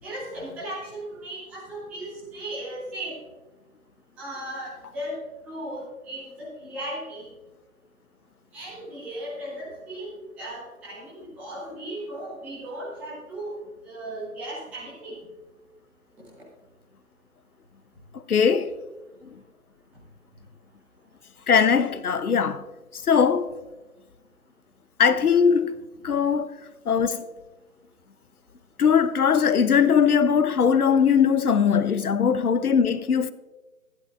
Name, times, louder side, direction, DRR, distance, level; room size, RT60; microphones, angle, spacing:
voice 1, 0.0-3.2 4.2-5.2 5.4-7.3 8.5-10.1 10.4-13.5 13.8-15.2, right 1 dB, 5° right, 0.8 m, -36 dB
voice 2, 18.3-18.7 21.5-22.6 22.9-23.5 25.0-25.7 26.0-26.5 26.9-27.2 28.8-33.3, left 7 dB, 80° left, 0.8 m, -20 dB
13.5 x 11.5 x 2.4 m
figure-of-eight pair, 150°, 44 cm